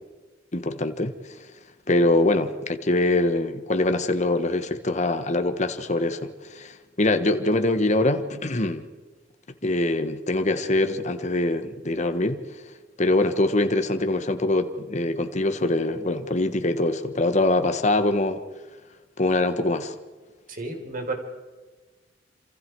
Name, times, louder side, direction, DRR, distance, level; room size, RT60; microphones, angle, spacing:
voice 1, 0.5-1.1 1.9-8.8 9.6-12.4 13.0-18.4 19.2-19.9, left 2 dB, 40° left, 1.5 m, -23 dB
voice 2, 20.5-21.1, right 2 dB, 50° right, 4.3 m, -31 dB
28.0 x 27.0 x 4.8 m
head